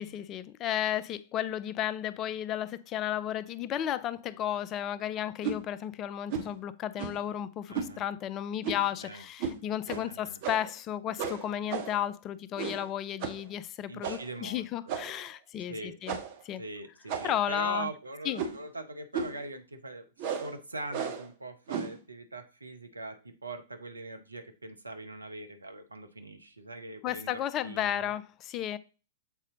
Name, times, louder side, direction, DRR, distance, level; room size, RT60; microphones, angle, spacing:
voice 1, 0.0-16.2 16.4-16.6 17.2-17.9 18.3-18.5 27.0-28.8, left 11 dB, 30° left, 0.4 m, -33 dB
sound 1, 5.4-5.6 6.3-6.5 7.0-7.3 7.7-7.9 8.6-8.9 9.4-9.6 9.9-10.0 10.4-10.8 11.2-12.1 12.6-12.9 13.2-13.4 14.0-14.3 14.9-15.3 16.1-16.4 17.1-17.5 18.3-18.7 19.1-19.4 20.2-20.5 20.9-21.3 21.7-22.0, right 6 dB, 45° right, 1.3 m, -35 dB
voice 2, 7.7-8.0 9.0-9.2 9.9-10.4 13.9-15.0 15.7-16.0 16.6-28.1, right 2 dB, 85° right, 1.0 m, -42 dB
7.3 x 4.2 x 3.8 m
figure-of-eight pair, 105°, 0 cm